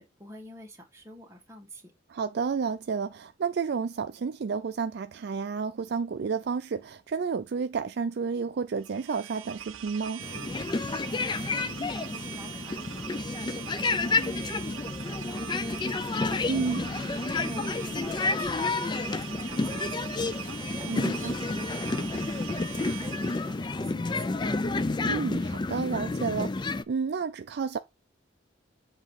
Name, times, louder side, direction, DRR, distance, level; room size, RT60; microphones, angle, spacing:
voice 1, 0.0-1.9 11.5-16.4 16.8-22.4 22.8-24.6, left 1 dB, 15° right, 1.8 m, -47 dB
voice 2, 2.1-10.2 16.5-16.8 20.9-21.4 25.1-27.8, right 5 dB, 55° right, 0.4 m, -31 dB
sound 1, 8.8-23.6, right 10 dB, 85° right, 0.7 m, -41 dB
sound 2, 10.2-26.8, left 3 dB, 25° left, 0.3 m, -30 dB
7.4 x 3.0 x 5.5 m
head